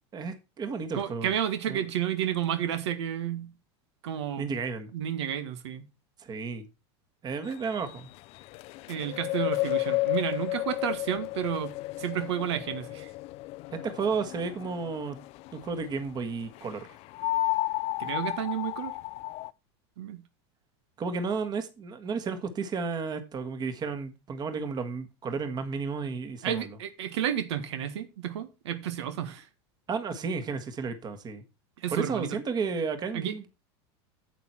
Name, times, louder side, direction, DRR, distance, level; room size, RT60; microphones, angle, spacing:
voice 1, 0.1-1.3 1.7-1.8 4.4-4.9 6.2-6.7 7.2-8.1 13.7-15.2 15.5-16.9 21.0-26.8 29.9-31.4 31.9-33.5, right 5 dB, 30° right, 1.6 m, -32 dB
voice 2, 0.9-3.5 4.0-4.4 4.9-5.8 8.9-13.1 18.0-18.9 20.0-20.2 26.4-29.4 31.8-32.4 33.1-33.3, right 10 dB, 85° right, 1.6 m, -31 dB
echos in a dome, 7.5-15.9 16.5-19.5, left 18 dB, 45° left, 0.5 m, -32 dB
9.1 x 8.2 x 4.5 m
supercardioid pair, 130°, 14 cm